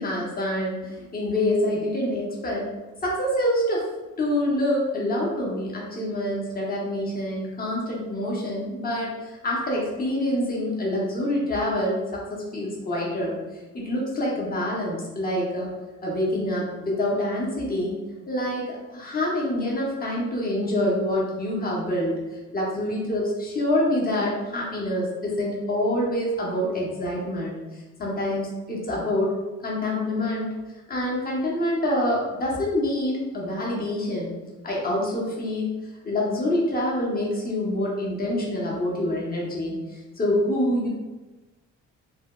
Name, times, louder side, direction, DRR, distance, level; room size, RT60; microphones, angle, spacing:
voice 1, 0.0-2.7 3.0-3.8 4.2-13.4 13.7-15.7 16.0-18.0 18.3-22.2 22.5-29.3 29.6-30.5 30.9-34.3 34.6-35.7 36.0-40.9, left 1 dB, 30° left, -4 dB, 0.9 m, -26 dB
3.2 x 2.2 x 2.3 m, 1.1 s
cardioid pair, 90°, 30 cm